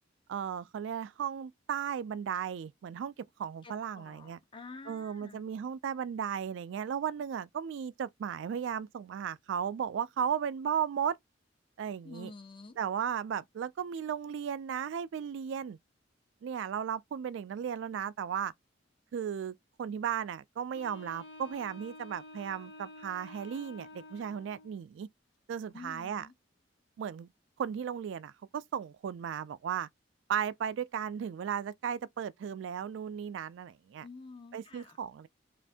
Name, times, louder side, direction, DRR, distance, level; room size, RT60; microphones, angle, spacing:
voice 1, 0.3-4.4 4.9-11.2 11.8-12.3 12.8-15.8 16.4-18.5 19.1-25.1 25.5-26.3 27.0-27.3 27.6-29.9 30.3-34.1 34.5-35.3, right 8 dB, 75° right, 0.3 m, -35 dB
voice 2, 3.6-5.4 12.0-12.8 25.7-26.3 34.0-35.0, left 3 dB, 25° left, 0.5 m, -49 dB
Wind instrument woodwind instrument, 20.7-24.8, left 1 dB, 75° left, 1.2 m, -50 dB
2.5 x 2.5 x 3.4 m
head